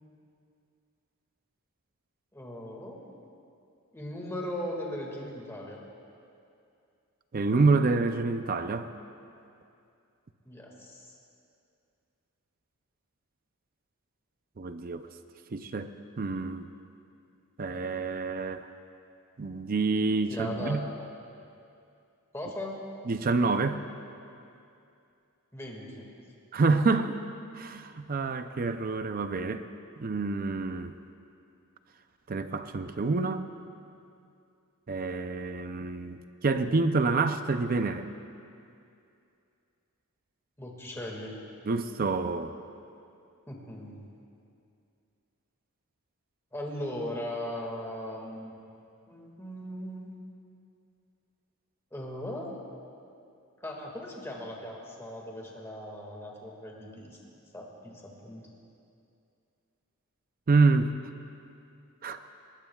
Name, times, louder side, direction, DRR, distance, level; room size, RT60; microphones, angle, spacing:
voice 1, 2.3-3.1 3.9-5.8 10.5-11.1 20.3-20.8 22.3-22.8 25.5-26.1 40.6-41.4 43.5-44.0 46.5-48.5 49.1-50.1 51.9-52.6 53.6-57.2 57.5-58.4, left 1 dB, 10° left, -1 dB, 1.9 m, -38 dB
voice 2, 7.3-8.9 14.6-15.1 15.5-15.9 16.2-16.7 17.6-18.7 19.4-20.8 23.1-23.8 26.5-27.2 27.5-29.6 30.0-30.9 32.3-33.5 34.9-38.1 41.7-42.5 60.5-60.9 62.0-62.2, right 3 dB, 40° right, 9 dB, 0.5 m, -27 dB
21.0 x 19.0 x 2.3 m, 2.5 s
head